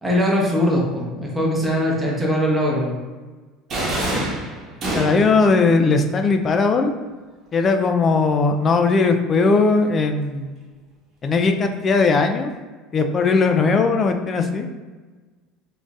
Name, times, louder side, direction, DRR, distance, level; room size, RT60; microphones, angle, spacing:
voice 1, 0.0-2.9, equal, 10° right, -3 dB, 0.8 m, -21 dB
sound 1, 3.7-5.4, right 1 dB, 35° right, 0.9 m, -25 dB
voice 2, 4.9-6.9 7.5-10.5 11.2-12.5 12.9-14.7, left 4 dB, 30° left, 6 dB, 0.3 m, -18 dB
3.7 x 2.5 x 2.3 m, 1.3 s
supercardioid pair, 130°, 0 cm